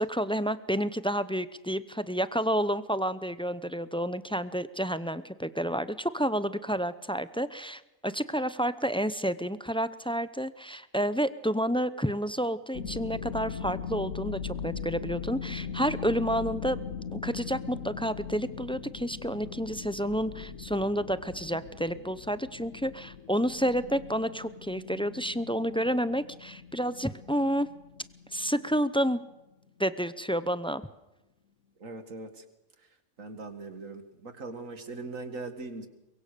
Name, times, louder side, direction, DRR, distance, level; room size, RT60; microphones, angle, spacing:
voice 1, 0.0-16.8 17.1-27.7 28.3-29.2 29.8-30.8, equal, 5° left, 14 dB, 0.4 m, -30 dB
sound 1, 12.7-29.3, left 6 dB, 85° left, 1.5 m, -40 dB
voice 2, 31.8-32.4 33.2-35.9, right 3 dB, 70° right, 9 dB, 2.4 m, -40 dB
24.0 x 22.5 x 6.8 m, 0.97 s
omnidirectional pair, 1.4 m